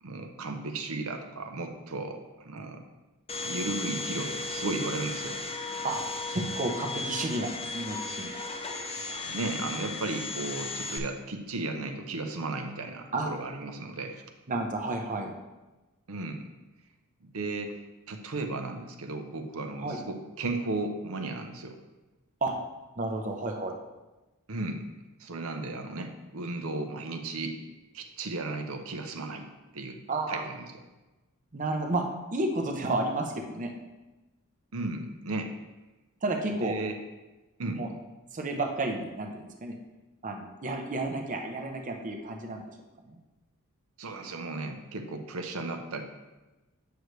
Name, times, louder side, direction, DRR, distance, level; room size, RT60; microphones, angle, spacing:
voice 1, 0.0-2.8 3.4-5.4 9.2-14.2 16.1-16.5 17.2-17.8 18.1-21.8 24.5-24.8 25.2-27.6 27.9-29.5 29.7-30.0 30.3-30.6 34.7-35.5 36.5-37.0 37.6-37.8 41.1-41.2 44.0-46.0, right 2 dB, 70° right, 5 dB, 0.7 m, -35 dB
Domestic sounds home sounds, 3.3-11.0, left 3 dB, 25° left, 0.6 m, -35 dB
voice 2, 6.3-8.3 13.1-13.3 14.5-15.3 19.8-20.0 22.4-22.5 23.0-23.8 30.1-30.4 31.5-33.7 36.2-36.8 37.7-37.9 38.3-39.8 40.2-42.6 43.1-43.2, right 2 dB, 35° right, 3 dB, 0.7 m, -31 dB
8.0 x 6.5 x 3.2 m, 1.1 s
head